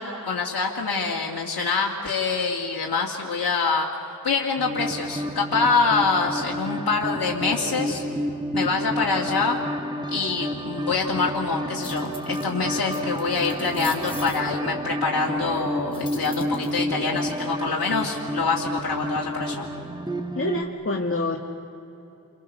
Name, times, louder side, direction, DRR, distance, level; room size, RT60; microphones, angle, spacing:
voice 1, 0.0-3.9 4.2-8.0 8.5-9.6 10.1-19.7, left 4 dB, 65° left, -3 dB, 2.5 m, -25 dB
sound 1, 4.6-20.6, equal, 10° right, 1.4 m, -30 dB
sound 2, 11.8-12.5 12.9-14.4 15.9-16.8, left 2 dB, 15° left, 3.8 m, -40 dB
voice 2, 20.4-21.4, left 2 dB, 35° left, 0 dB, 1.9 m, -26 dB
29.5 x 23.0 x 7.0 m, 2.9 s
cardioid pair, 55°, 39 cm